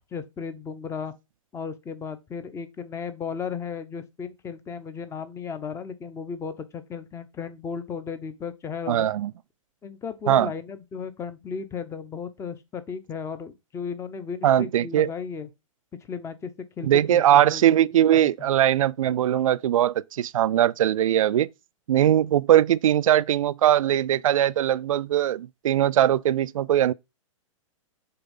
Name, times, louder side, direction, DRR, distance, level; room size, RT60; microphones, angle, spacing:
voice 1, 0.1-1.1 1.5-9.1 9.8-15.5 16.1-16.5 16.8-17.6 18.1-18.5, left 6 dB, 15° left, 0.9 m, -35 dB
voice 2, 8.9-9.3 10.3-10.5 14.4-15.1 16.8-21.5 21.9-26.9, right 11 dB, 80° right, 0.4 m, -20 dB
6.8 x 3.6 x 5.4 m
hypercardioid pair, 125°, 17 cm